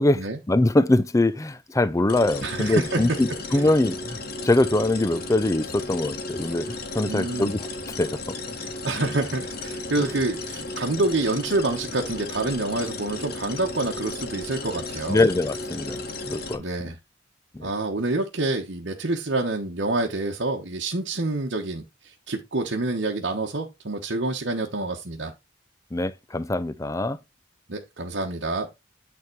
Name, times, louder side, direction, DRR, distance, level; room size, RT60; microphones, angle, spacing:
voice 1, 0.0-4.2 4.4-7.7 8.0-8.4 15.1-16.6 17.5-17.7 25.9-27.2, left 2 dB, 15° left, 0.5 m, -23 dB
sound 1, 2.1-16.6, left 2 dB, 55° left, 1.6 m, -34 dB
voice 2, 2.4-3.0 7.0-7.5 8.5-15.2 16.6-17.0 17.6-25.3 27.7-28.7, right 2 dB, 70° right, 1.1 m, -27 dB
9.4 x 3.7 x 4.6 m
head